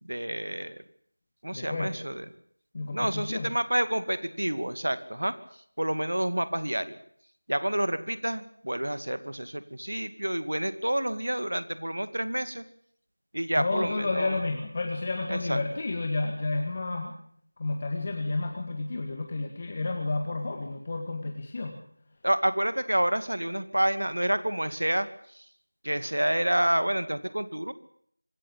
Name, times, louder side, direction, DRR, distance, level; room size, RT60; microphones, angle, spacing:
voice 1, 0.0-0.8 1.4-2.3 2.9-5.3 5.8-7.0 7.5-12.6 13.3-14.4 15.3-15.6 22.2-25.4 25.8-27.7, right 1 dB, 75° right, 12 dB, 2.3 m, -28 dB
voice 2, 1.5-2.0 2.7-3.5 13.6-17.1 17.6-21.8, left 3 dB, 25° left, 3 dB, 1.9 m, -31 dB
25.5 x 14.5 x 8.8 m, 0.63 s
figure-of-eight pair, 175°, 0 cm